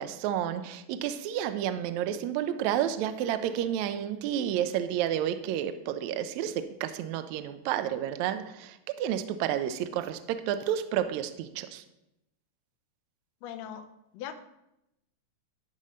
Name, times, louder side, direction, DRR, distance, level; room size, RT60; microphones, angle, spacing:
voice 1, 0.0-11.8, right 10 dB, 80° right, 10 dB, 1.6 m, -30 dB
voice 2, 13.4-13.9 14.1-14.3, left 10 dB, 85° left, 7 dB, 1.5 m, -39 dB
12.0 x 4.2 x 5.0 m, 0.86 s
omnidirectional pair, 3.8 m